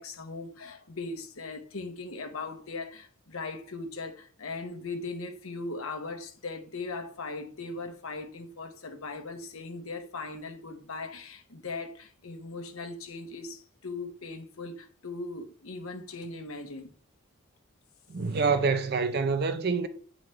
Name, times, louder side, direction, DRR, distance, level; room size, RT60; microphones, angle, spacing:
voice 1, 0.0-16.9, left 3 dB, 80° left, 1.1 m, -39 dB
voice 2, 18.1-19.9, right 4 dB, 50° right, 0.5 m, -26 dB
8.8 x 4.0 x 3.2 m
head